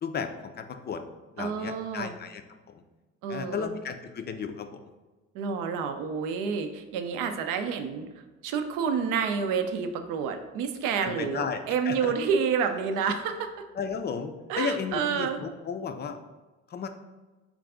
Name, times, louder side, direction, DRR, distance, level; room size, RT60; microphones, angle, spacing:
voice 1, 0.0-1.0 1.3-2.4 2.7-2.8 3.3-4.8 11.0-12.1 13.8-16.2 16.7-16.9, left 6 dB, 30° left, 7 dB, 0.4 m, -34 dB
voice 2, 1.4-2.1 3.2-3.7 5.3-8.1 8.4-13.5 14.5-15.4, right 6 dB, 65° right, 7 dB, 0.5 m, -29 dB
3.9 x 2.4 x 3.6 m, 1.2 s
hypercardioid pair, 55°, 34 cm